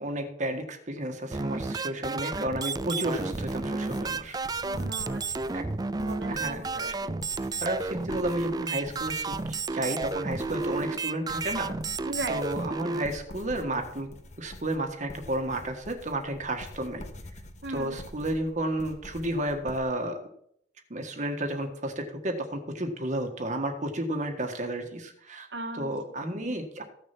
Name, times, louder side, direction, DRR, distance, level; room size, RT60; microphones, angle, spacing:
voice 1, 0.0-4.4 5.5-5.6 6.3-6.6 7.6-9.4 9.7-11.7 12.3-14.1 14.4-17.0 17.7-20.2 20.9-25.5 25.7-26.8, right 1 dB, 45° right, 4 dB, 1.5 m, -32 dB
sound 1, 1.3-13.0, right 3 dB, 20° right, 0.4 m, -32 dB
sound 2, 2.9-19.8, left 1 dB, 40° left, 1.5 m, -46 dB
voice 2, 4.6-5.3 6.0-7.2 12.0-12.4 17.6-18.0 25.5-25.9, right 2 dB, 80° right, 3 dB, 1.8 m, -37 dB
15.0 x 6.6 x 6.0 m, 0.69 s
head